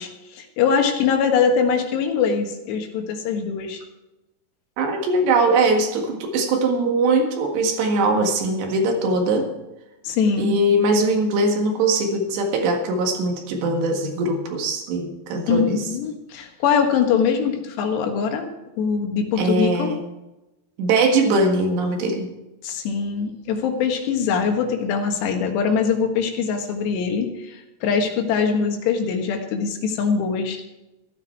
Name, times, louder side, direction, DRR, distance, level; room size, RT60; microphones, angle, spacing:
voice 1, 0.0-3.8 10.0-10.6 15.5-18.5 18.8-19.9 22.6-30.6, left 6 dB, 85° left, 4 dB, 3.7 m, -22 dB
voice 2, 4.8-9.5 10.4-15.8 19.4-20.0 20.8-22.3, right 2 dB, 90° right, 3 dB, 4.0 m, -21 dB
14.5 x 13.0 x 4.6 m, 1.0 s
omnidirectional pair, 4.8 m